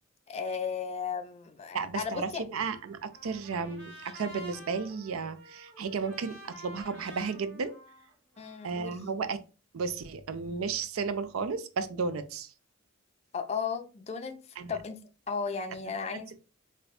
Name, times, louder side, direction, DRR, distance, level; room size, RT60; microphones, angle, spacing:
voice 1, 0.3-2.4 8.4-9.0 13.3-14.4 14.7-16.4, left 6 dB, 30° left, 0.4 m, -35 dB
voice 2, 1.7-7.7 8.6-9.4 9.7-12.5 14.6-14.8, right 5 dB, 85° right, 0.4 m, -33 dB
Trumpet, 2.6-8.9, right 1 dB, 50° right, 1.6 m, -50 dB
4.2 x 2.6 x 2.3 m
head